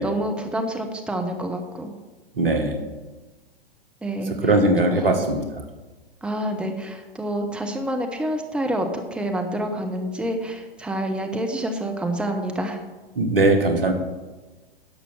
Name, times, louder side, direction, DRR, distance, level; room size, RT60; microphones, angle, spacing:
voice 1, 0.0-1.9 4.0-4.5 4.8-5.2 6.2-12.8, right 1 dB, 5° right, 4 dB, 0.8 m, -28 dB
voice 2, 2.4-2.8 4.4-5.5 13.2-13.9, right 2 dB, 70° right, 6 dB, 1.7 m, -20 dB
11.0 x 6.7 x 6.2 m, 1.2 s
figure-of-eight pair, 100°, 29 cm